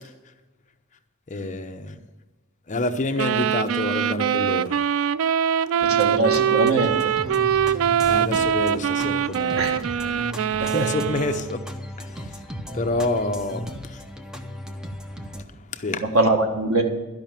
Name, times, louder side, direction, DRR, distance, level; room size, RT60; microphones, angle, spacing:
voice 1, 1.3-2.0 2.7-4.7 8.1-9.8 10.6-11.6 12.7-13.6 15.7-16.0, left 2 dB, 35° left, 0.7 m, -27 dB
sound 1, 3.2-11.5, right 8 dB, 70° right, 0.3 m, -23 dB
sound 2, 5.8-15.4, equal, 5° right, 0.7 m, -36 dB
voice 2, 5.8-7.0 9.6-9.8 10.6-10.9 16.0-16.8, right 2 dB, 90° right, 1.7 m, -22 dB
12.0 x 5.7 x 8.9 m
head